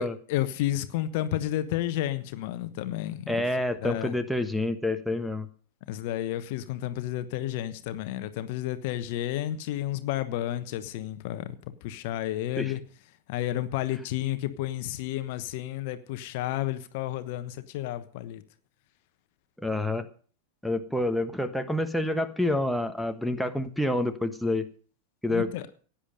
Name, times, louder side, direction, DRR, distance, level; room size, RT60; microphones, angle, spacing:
voice 1, 0.0-4.1 5.9-11.5 11.8-12.8 13.3-18.4 25.3-25.6, left 13 dB, 50° left, 1.2 m, -31 dB
voice 2, 3.3-5.5 12.6-12.7 19.6-20.1 20.6-24.7 25.2-25.5, left 1 dB, ahead, 1.3 m, -28 dB
16.5 x 10.0 x 5.3 m
figure-of-eight pair, 90°, 0 cm